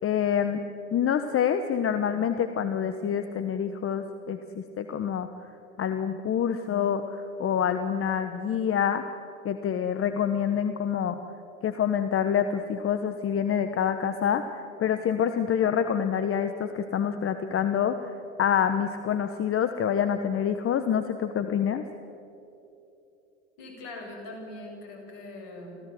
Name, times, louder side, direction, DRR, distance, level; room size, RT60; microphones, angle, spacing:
voice 1, 0.0-0.6 0.9-5.3 5.8-9.0 9.4-11.2 11.6-18.1 18.4-21.8, left 8 dB, 40° left, 9 dB, 1.2 m, -27 dB
voice 2, 23.6-25.8, left 2 dB, 60° left, 1 dB, 6.9 m, -41 dB
25.5 x 16.0 x 7.8 m, 2.8 s
hypercardioid pair, 75°, 35 cm